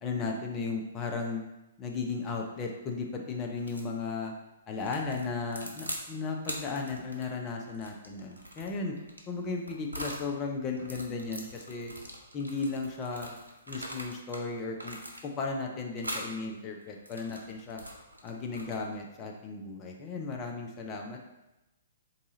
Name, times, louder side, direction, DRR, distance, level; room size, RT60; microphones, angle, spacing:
voice 1, 0.0-1.4 1.8-4.3 4.7-8.9 9.3-11.9 12.3-13.3 13.7-15.0 15.2-17.8 18.2-21.3, left 4 dB, 20° left, 1 dB, 0.4 m, -35 dB
sound 1, 3.6-3.9 4.8-6.1 6.4-10.3 10.7-14.4 14.8-15.5 16.0-16.3 16.9-19.0, equal, 85° right, 0.6 m, -42 dB
3.6 x 2.7 x 3.9 m, 0.98 s
figure-of-eight pair, 120°, 0 cm